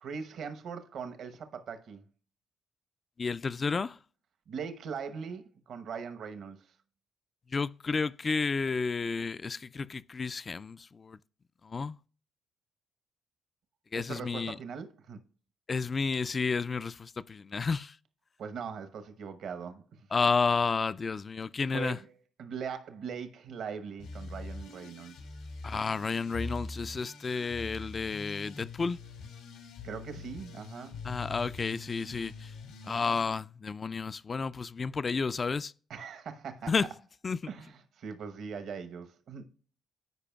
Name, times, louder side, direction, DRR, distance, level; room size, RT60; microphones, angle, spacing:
voice 1, 0.0-2.0 4.5-6.7 13.9-15.2 18.4-20.1 21.7-22.1 22.4-25.1 29.8-31.0 35.9-36.7 37.5-39.5, right 6 dB, 65° right, 1.0 m, -40 dB
voice 2, 3.2-4.0 7.5-11.2 11.6-12.0 13.9-14.6 15.7-18.0 20.1-22.0 25.6-29.0 31.0-32.5 32.9-35.7 36.7-36.9 37.2-37.4, left 4 dB, 40° left, 0.3 m, -31 dB
sound 1, 24.0-33.2, left 3 dB, 85° left, 1.9 m, -43 dB
13.5 x 5.0 x 2.3 m
supercardioid pair, 60°, 0 cm